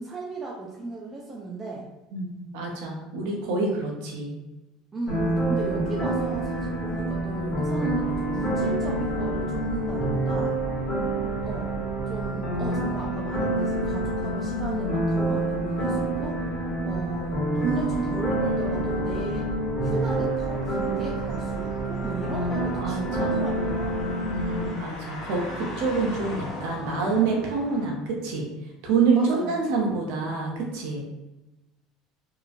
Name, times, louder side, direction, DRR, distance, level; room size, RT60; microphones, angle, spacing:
voice 1, 0.0-1.9 4.9-10.6 11.4-11.8 12.1-16.4 16.9-19.5 19.8-24.1 29.1-29.6, right 3 dB, 20° right, -2 dB, 0.4 m, -36 dB
voice 2, 2.1-4.3 5.5-5.8 22.8-23.5 24.3-28.5 28.8-31.0, right 4 dB, 75° right, -1 dB, 0.8 m, -27 dB
sound 1, 5.1-24.7, right 1 dB, 25° left, 1.4 m, -27 dB
sound 2, 19.9-27.9, left 1 dB, 65° left, 0.8 m, -40 dB
2.9 x 2.5 x 2.4 m, 1.0 s
supercardioid pair, 110°, 0 cm